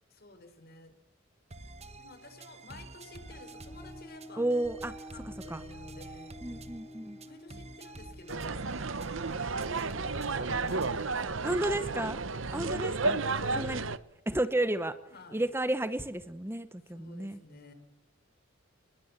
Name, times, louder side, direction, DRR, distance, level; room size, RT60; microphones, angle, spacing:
voice 1, 0.1-1.0 2.0-4.5 5.1-6.4 7.2-8.6 9.7-12.2 13.2-13.8 15.1-15.4 16.9-17.7, left 2 dB, 50° left, 8 dB, 4.7 m, -50 dB
sound 1, 1.5-11.1, right 2 dB, 30° right, 1.3 m, -49 dB
sound 2, 3.0-10.4, left 1 dB, 20° left, 2.9 m, -51 dB
voice 2, 4.4-4.9 5.5-5.6 6.4-7.2 11.4-12.2 12.5-13.2 13.6-13.8 14.3-15.0 15.3-17.4, right 1 dB, 10° right, 11 dB, 0.9 m, -32 dB
sound 3, 8.3-14.0, right 3 dB, 70° right, 1.0 m, -32 dB
23.5 x 21.0 x 7.4 m, 0.80 s
head